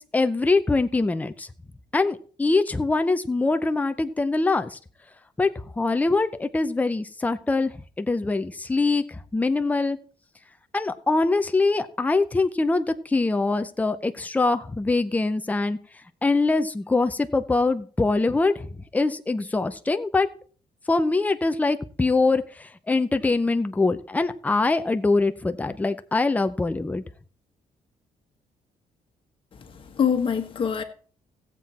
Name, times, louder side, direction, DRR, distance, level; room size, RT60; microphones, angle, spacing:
voice 1, 0.0-1.5 1.9-4.8 5.4-5.5 5.8-7.7 8.0-10.0 10.7-15.8 16.2-20.3 20.9-27.0, left 3 dB, 10° left, 0.6 m, -23 dB
voice 2, 29.5-30.8, left 7 dB, 40° left, 1.5 m, -25 dB
16.5 x 7.6 x 4.2 m
cardioid pair, 150°, 14 cm